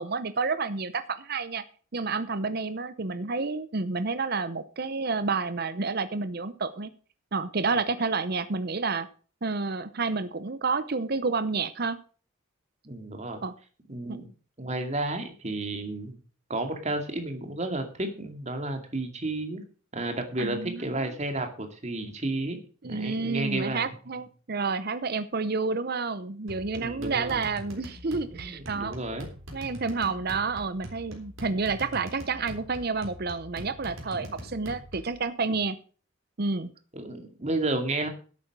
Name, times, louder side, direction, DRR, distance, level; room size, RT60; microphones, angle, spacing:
voice 1, 0.0-1.6 1.9-6.9 7.3-9.1 9.4-12.0 13.4-13.5 14.1-14.2 20.4-20.8 22.8-29.0 29.5-35.8 36.4-36.7, right 4 dB, 50° right, 12 dB, 0.8 m, -29 dB
voice 2, 12.8-13.4 13.9-14.3 14.6-16.2 16.5-19.6 19.9-23.9 26.7-27.4 28.3-29.3 34.2-34.5 35.4-35.6 36.9-38.1, right 2 dB, 35° right, 6 dB, 2.3 m, -32 dB
sound 1, 26.5-35.2, equal, 85° right, 3.8 m, -43 dB
11.5 x 8.6 x 6.1 m, 0.39 s
head